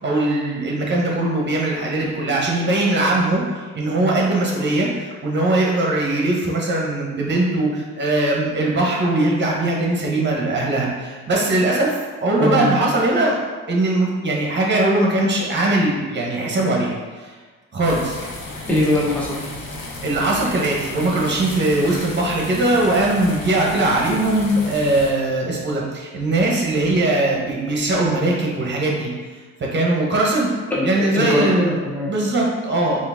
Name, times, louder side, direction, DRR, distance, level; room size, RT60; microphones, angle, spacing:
voice 1, 0.0-3.4 3.7-11.9 12.2-13.3 13.7-16.9 17.2-17.3 17.7-18.2 20.0-29.1 29.7-30.5 30.8-31.7 32.1-33.0, right 2 dB, 35° right, -2 dB, 1.0 m, -20 dB
voice 2, 12.4-12.8 18.7-19.4 30.7-32.1, left 1 dB, 5° left, -5 dB, 0.8 m, -21 dB
sound 1, 17.8-25.1, left 2 dB, 85° left, 0.9 m, -34 dB
3.7 x 2.6 x 3.5 m, 1.4 s
cardioid pair, 90°, 30 cm